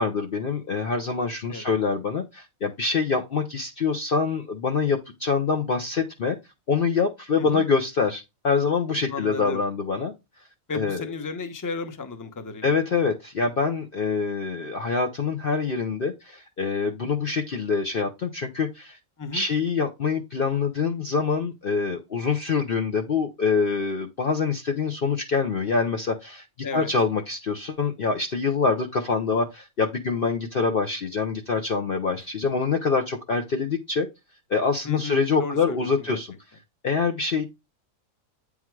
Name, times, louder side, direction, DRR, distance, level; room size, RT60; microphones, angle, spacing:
voice 1, 0.0-6.4 6.7-10.1 10.7-11.1 12.6-19.0 19.3-26.4 26.7-34.1 34.5-36.3 36.8-37.4, left 5 dB, 50° left, 0.8 m, -25 dB
voice 2, 9.1-9.6 10.7-12.8 19.2-19.5 26.6-26.9 34.8-36.2, left 4 dB, 15° left, 0.7 m, -34 dB
8.6 x 3.7 x 4.6 m
omnidirectional pair, 1.5 m